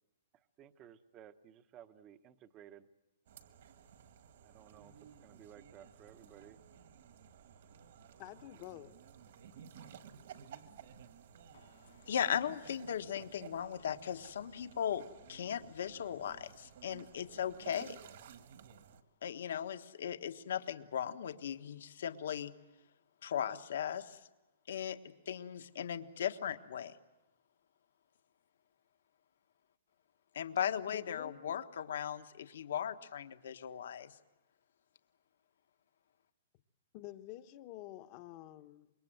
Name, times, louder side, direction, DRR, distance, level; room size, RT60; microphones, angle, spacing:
voice 1, 0.6-2.9 4.4-4.9 5.2-6.6, right 10 dB, 20° right, 12 dB, 0.8 m, -56 dB
sound 1, 3.3-19.0, right 8 dB, 55° right, 1.7 m, -55 dB
voice 2, 8.2-8.9 30.9-31.6 36.9-38.9, left 14 dB, 30° left, 11 dB, 0.9 m, -49 dB
voice 3, 12.1-18.0 19.2-22.5 23.2-24.2 24.7-27.0 30.3-34.1, left 9 dB, 65° left, 9 dB, 1.3 m, -38 dB
25.5 x 22.5 x 7.9 m, 1.0 s
hypercardioid pair, 175°, 0 cm